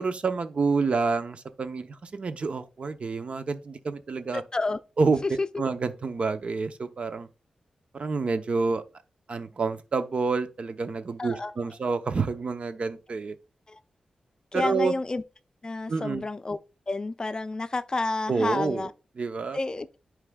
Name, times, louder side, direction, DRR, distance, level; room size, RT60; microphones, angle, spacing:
voice 1, 0.0-4.4 5.0-5.2 5.6-7.3 7.9-8.8 9.3-13.4 14.5-14.9 15.9-16.2 18.3-18.9 19.2-19.6, right 4 dB, 55° right, 0.7 m, -28 dB
voice 2, 4.3-4.8 5.2-5.5 11.2-11.5 13.7-13.8 14.5-15.2 15.6-16.6 16.9-18.9 19.5-19.9, left 3 dB, 35° left, 0.4 m, -29 dB
9.6 x 4.8 x 2.3 m
cardioid pair, 65°, 2 cm